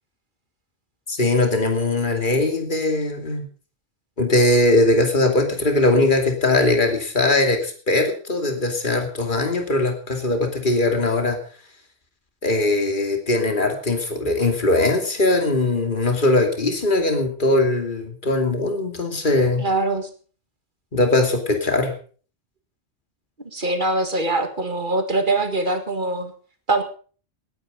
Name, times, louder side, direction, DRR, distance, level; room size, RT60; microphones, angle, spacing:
voice 1, 1.1-3.5 4.2-11.4 12.4-19.6 20.9-21.9, left 2 dB, 40° left, 4 dB, 2.8 m, -20 dB
voice 2, 19.6-20.1 23.5-26.3 26.7-26.8, right 2 dB, 40° right, 7 dB, 2.2 m, -23 dB
19.0 x 9.5 x 5.3 m, 0.41 s
omnidirectional pair, 1.3 m